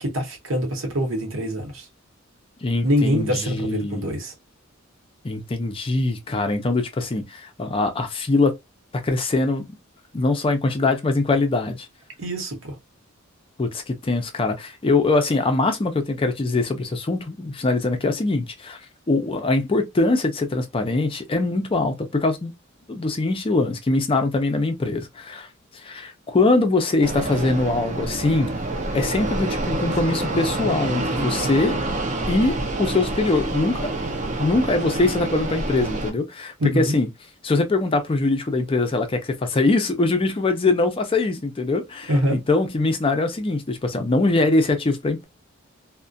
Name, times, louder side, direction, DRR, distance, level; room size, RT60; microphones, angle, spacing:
voice 1, 0.0-1.9 2.8-4.3 12.2-12.8 36.6-36.9 42.1-42.4, equal, 75° right, 0.9 m, -24 dB
voice 2, 2.6-4.1 5.2-8.5 9.0-9.7 10.1-11.9 13.6-18.8 19.1-22.5 22.9-25.5 25.8-28.5 28.9-31.8 32.3-33.9 34.4-37.1 37.4-45.2, left 3 dB, 25° left, 0.4 m, -22 dB
Fixed-wing aircraft airplane, 27.0-36.1, right 2 dB, 35° right, 0.5 m, -27 dB
2.3 x 2.1 x 2.5 m
head